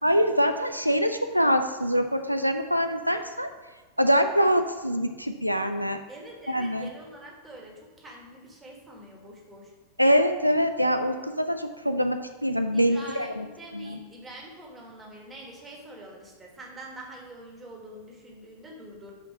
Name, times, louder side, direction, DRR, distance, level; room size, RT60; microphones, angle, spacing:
voice 1, 0.0-3.5 4.0-6.0 6.5-6.9 10.0-13.4 13.7-14.0, equal, 90° right, 7 dB, 0.3 m, -24 dB
voice 2, 6.1-9.7 12.7-19.1, right 1 dB, 15° right, -1 dB, 1.7 m, -45 dB
5.9 x 4.5 x 4.8 m, 1.4 s
figure-of-eight pair, 90°, 0 cm